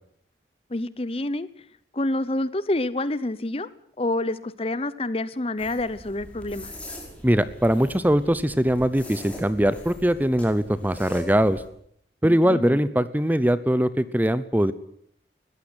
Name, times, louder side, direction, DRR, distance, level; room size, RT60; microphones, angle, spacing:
voice 1, 0.7-1.5 1.9-3.7 4.0-6.7 12.2-12.8, left 2 dB, 35° left, 17 dB, 0.9 m, -28 dB
sound 1, 5.6-11.7, equal, 5° left, 4.8 m, -41 dB
voice 2, 7.2-11.6 12.2-14.7, equal, 10° right, 15 dB, 0.8 m, -21 dB
20.5 x 15.0 x 9.9 m, 0.69 s
head